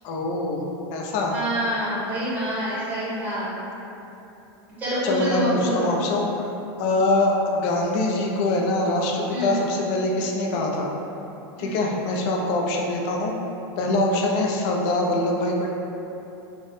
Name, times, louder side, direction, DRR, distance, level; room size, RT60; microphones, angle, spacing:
voice 1, 0.0-1.3 5.0-6.5 6.8-10.9 11.6-13.3 13.8-15.7, left 2 dB, 45° left, -1 dB, 0.4 m, -24 dB
voice 2, 1.3-3.5 4.8-5.9 9.3-9.5 11.6-11.8, equal, 10° right, -10 dB, 1.1 m, -26 dB
2.8 x 2.1 x 3.1 m, 3.0 s
supercardioid pair, 145°, 13 cm